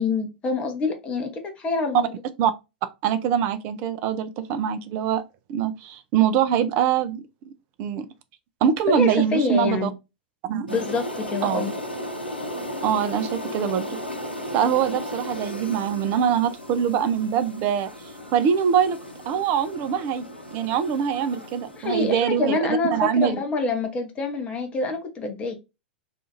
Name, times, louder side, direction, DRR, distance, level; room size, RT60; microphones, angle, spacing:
voice 1, 0.0-2.2 8.9-9.9 10.7-11.7 21.8-25.5, left 3 dB, 20° left, 0.8 m, -26 dB
voice 2, 3.0-5.2 5.5-7.2 7.8-8.1 8.6-9.9 10.4-10.8 11.4-11.7 12.8-14.0 14.5-17.9 18.3-19.0 19.3-22.6 22.9-23.4, right 8 dB, 35° right, 0.4 m, -23 dB
sound 1, 10.7-22.5, left 1 dB, 90° left, 0.7 m, -35 dB
2.6 x 2.4 x 3.7 m
figure-of-eight pair, 100°, 5 cm